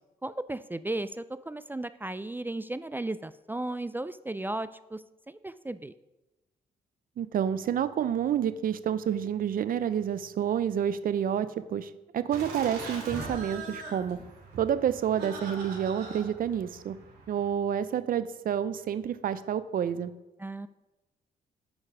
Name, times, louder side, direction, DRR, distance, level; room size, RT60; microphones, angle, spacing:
voice 1, 0.2-5.9 20.4-20.7, right 2 dB, 10° right, 14 dB, 0.3 m, -35 dB
voice 2, 7.2-14.2 14.6-17.0 17.3-20.1, right 9 dB, 60° right, 14 dB, 0.6 m, -29 dB
Laughter, 12.3-17.5, right 3 dB, 75° right, 2.5 m, -41 dB
8.3 x 5.2 x 4.9 m, 1.0 s
cardioid pair, 65°, 16 cm